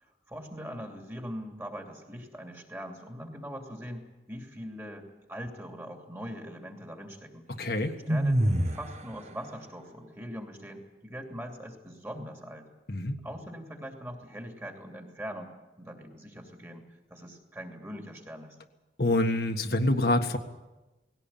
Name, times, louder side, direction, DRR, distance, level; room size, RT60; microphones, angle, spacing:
voice 1, 0.3-7.5 8.1-12.7 13.2-16.8 17.1-18.6, equal, 15° right, 2 dB, 2.8 m, -42 dB
voice 2, 7.6-7.9 12.9-13.1 19.0-20.4, left 1 dB, 60° left, 4 dB, 1.6 m, -26 dB
sound 1, 8.1-9.0, right 1 dB, 40° right, 1.4 m, -24 dB
20.0 x 17.0 x 8.8 m, 1.1 s
head